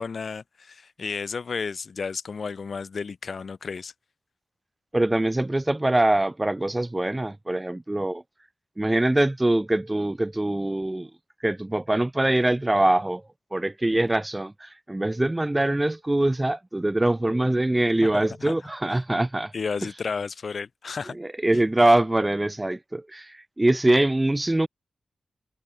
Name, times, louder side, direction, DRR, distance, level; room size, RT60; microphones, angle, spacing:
voice 1, 0.0-3.9 18.0-18.6 19.5-21.2, left 5 dB, 65° left, 0.9 m, -32 dB
voice 2, 4.9-8.2 8.8-11.1 11.4-13.2 13.5-19.5 21.1-24.7, right 1 dB, 20° right, 0.4 m, -23 dB
cardioid pair, 40°, 0 cm